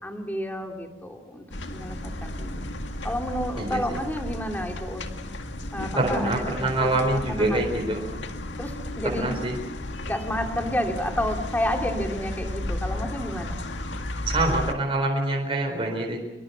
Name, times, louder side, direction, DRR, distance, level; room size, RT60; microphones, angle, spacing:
voice 1, 0.0-2.7 3.0-5.0 5.7-8.1 8.6-9.3 10.1-13.6, equal, 10° left, 3 dB, 2.8 m, -31 dB
sound 1, 1.5-14.7, left 1 dB, 75° left, 2.1 m, -34 dB
voice 2, 6.0-8.0 9.1-9.5 14.3-16.2, right 2 dB, 30° right, 1 dB, 4.3 m, -25 dB
25.5 x 23.5 x 6.9 m, 1.0 s
head